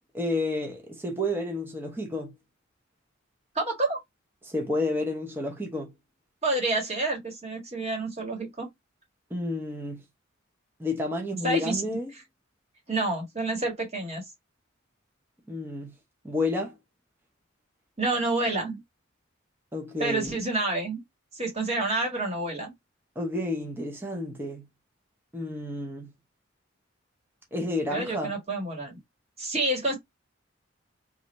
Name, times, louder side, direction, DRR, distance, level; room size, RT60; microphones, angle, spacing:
voice 1, 0.1-2.3 4.4-5.9 9.3-10.0 10.8-12.1 15.5-15.9 16.2-16.7 19.7-20.4 23.2-24.7 25.3-26.1 27.5-28.3, left 2 dB, 10° right, 0.7 m, -30 dB
voice 2, 3.5-4.0 6.4-8.7 11.4-12.0 12.9-14.2 18.0-18.8 20.0-21.0 21.3-22.7 27.9-29.0 29.4-29.9, right 2 dB, 30° right, 1.4 m, -28 dB
3.2 x 2.5 x 4.0 m
head